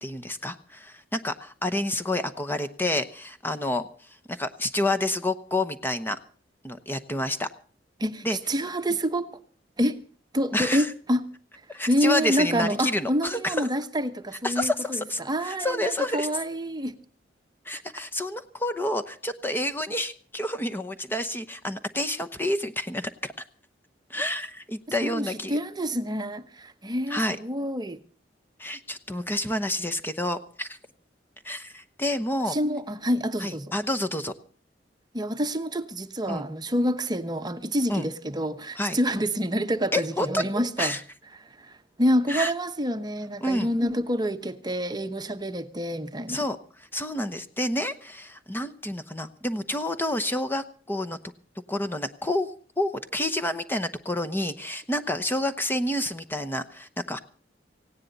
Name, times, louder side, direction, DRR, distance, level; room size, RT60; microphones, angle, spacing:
voice 1, 0.0-3.9 4.3-6.2 6.6-7.5 8.2-8.4 10.5-10.9 11.7-13.7 14.4-16.3 17.6-23.3 24.1-25.6 27.1-27.4 28.6-30.8 31.4-32.6 33.4-34.3 36.3-36.5 37.9-38.1 38.8-39.0 39.9-40.4 40.8-41.0 42.3-42.5 43.4-43.7 46.3-51.2 51.7-52.5 52.8-57.2, left 1 dB, 10° left, 1.0 m, -29 dB
voice 2, 8.0-9.3 9.8-10.0 10.3-11.2 11.9-16.9 17.7-17.8 25.0-28.0 32.5-33.7 35.1-41.0 42.0-46.4, equal, 25° right, 1.0 m, -27 dB
18.5 x 17.0 x 4.1 m
head